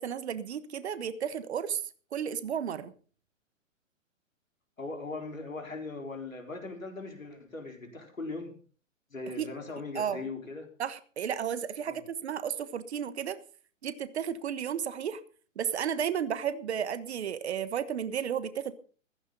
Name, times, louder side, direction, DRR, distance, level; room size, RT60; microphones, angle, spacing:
voice 1, 0.0-1.8 2.1-2.9 9.4-9.5 9.9-10.2 10.8-13.4 13.8-15.2 15.6-18.7, right 8 dB, 55° right, 1.3 m, -33 dB
voice 2, 4.8-8.5 9.1-10.7 11.8-12.0, left 3 dB, 80° left, 4.4 m, -39 dB
15.0 x 15.0 x 4.0 m
figure-of-eight pair, 120°, 40 cm